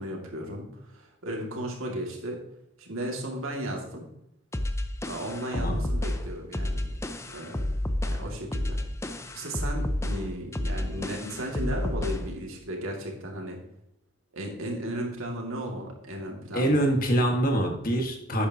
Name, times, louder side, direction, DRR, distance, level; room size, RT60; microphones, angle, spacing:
voice 1, 0.0-2.4 2.8-4.1 5.0-6.9 7.3-7.7 8.0-8.8 9.1-13.6 14.3-16.9, right 1 dB, 80° right, 0 dB, 2.4 m, -35 dB
sound 1, 4.5-12.3, left 1 dB, 15° left, 0.5 m, -30 dB
voice 2, 16.5-18.5, right 1 dB, 40° left, 2 dB, 1.7 m, -25 dB
12.0 x 8.5 x 2.9 m, 0.84 s
head